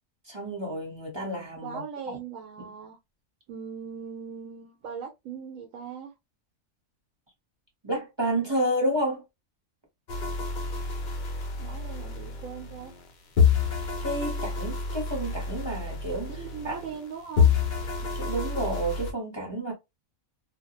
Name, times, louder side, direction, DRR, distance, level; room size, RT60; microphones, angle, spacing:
voice 1, 0.2-1.8 2.6-2.7 7.8-9.2 14.0-16.3 16.6-16.8 18.1-19.7, right 1 dB, 25° right, 0.7 m, -30 dB
voice 2, 1.6-3.0 3.5-6.1 11.6-12.9 16.4-17.5, right 7 dB, 80° right, 1.0 m, -39 dB
sound 1, 10.1-13.1 13.4-17.1 17.4-19.1, left 6 dB, 65° left, 0.4 m, -28 dB
2.3 x 2.1 x 2.8 m
omnidirectional pair, 1.5 m